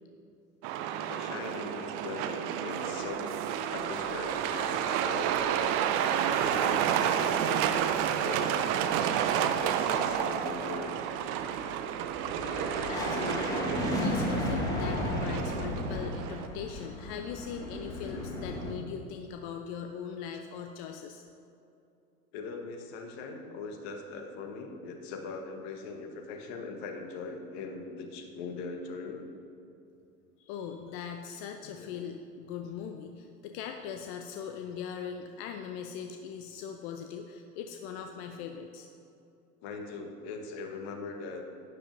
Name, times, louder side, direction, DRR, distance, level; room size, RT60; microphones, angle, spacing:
Truck, 0.6-16.5, right 9 dB, 35° right, 0.5 m, -30 dB
voice 1, 1.1-5.6 6.2-7.8 8.2-11.1 22.3-29.2 31.6-32.0 39.6-41.5, left 4 dB, 45° left, 4 dB, 1.4 m, -40 dB
sound 1, 4.6-5.5 5.8-6.7 7.0-18.7, left 1 dB, 10° left, 1.6 m, -35 dB
voice 2, 12.9-13.7 14.0-21.2 30.4-38.9, left 7 dB, 30° left, 5 dB, 0.4 m, -40 dB
11.5 x 9.7 x 2.7 m, 2.6 s
figure-of-eight pair, 95°, 43 cm